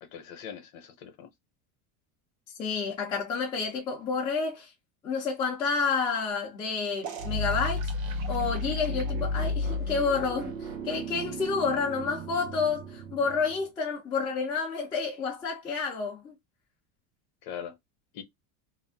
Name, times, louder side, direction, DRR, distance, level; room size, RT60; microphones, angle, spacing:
voice 1, 0.0-1.3 17.4-17.8 18.1-18.2, left 8 dB, 45° left, 0.7 m, -41 dB
voice 2, 2.6-4.7 5.0-7.9 8.3-16.4, left 5 dB, 10° left, 0.4 m, -29 dB
sound 1, 7.0-13.7, left 1 dB, 90° right, 0.9 m, -33 dB
2.5 x 2.1 x 3.3 m
cardioid pair, 175°, 41 cm